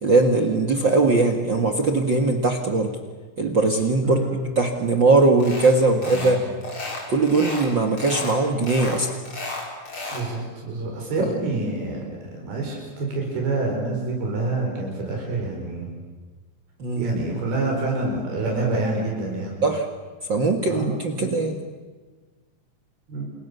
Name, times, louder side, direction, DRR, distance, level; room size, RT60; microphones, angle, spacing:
voice 1, 0.0-3.0 3.4-6.4 7.1-9.1 11.2-11.3 16.8-17.1 19.6-19.9 20.3-21.6, right 3 dB, 40° right, 6 dB, 1.9 m, -20 dB
voice 2, 4.0-4.3 6.0-6.4 10.1-12.0 12.3-15.9 16.9-19.6 20.7-21.3 23.1-23.2, right 3 dB, 85° right, 0 dB, 6.7 m, -27 dB
sound 1, 5.4-5.7 6.0-6.4 6.6-7.7 8.0-8.4 8.6-10.3, left 2 dB, 35° left, 5.5 m, -33 dB
30.0 x 28.0 x 6.9 m, 1.4 s
omnidirectional pair, 4.3 m